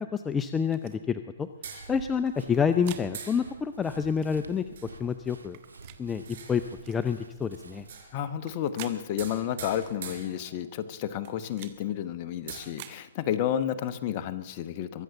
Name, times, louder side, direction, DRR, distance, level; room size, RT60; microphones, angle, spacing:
voice 1, 0.0-1.5 1.9-4.6 5.0-5.6 6.0-7.9, left 6 dB, 15° left, 10 dB, 0.5 m, -28 dB
sound 1, 0.7-1.0 2.3-3.1 4.1-4.3 5.4-6.0 6.8-7.0 8.3-9.0 9.8-10.0 11.0-11.8 12.6-13.0, right 13 dB, 40° right, 1.3 m, -47 dB
sound 2, 1.6-2.4 3.1-3.9 4.8-5.1 6.2-6.9 7.8-8.4 9.2-10.9 11.4-11.5 11.7-11.8 12.3-12.6, right 6 dB, 55° right, 4.2 m, -44 dB
Run, 1.8-8.0, right 3 dB, 90° right, 1.7 m, -48 dB
voice 2, 8.1-15.0, left 10 dB, 35° left, 11 dB, 1.0 m, -31 dB
22.5 x 7.8 x 7.0 m, 1.0 s
hypercardioid pair, 140°, 0 cm